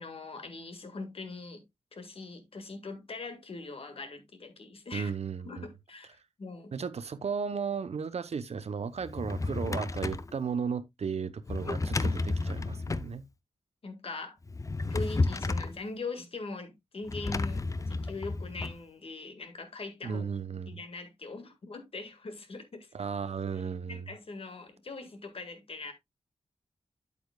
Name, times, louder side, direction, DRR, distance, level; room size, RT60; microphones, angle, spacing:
voice 1, 0.0-1.6 1.9-5.1 5.5-6.7 13.8-14.4 14.9-20.2 20.7-22.9 23.9-25.9, left 3 dB, 55° left, 1.8 m, -41 dB
voice 2, 4.9-5.7 6.7-13.3 20.0-20.8 22.9-24.1, right 6 dB, 65° right, 0.8 m, -35 dB
Drawer open or close, 9.0-10.3 11.5-13.1 14.5-15.8 17.1-18.8, left 3 dB, 30° left, 0.5 m, -32 dB
8.7 x 8.2 x 2.3 m
wide cardioid pair, 95°, 12 cm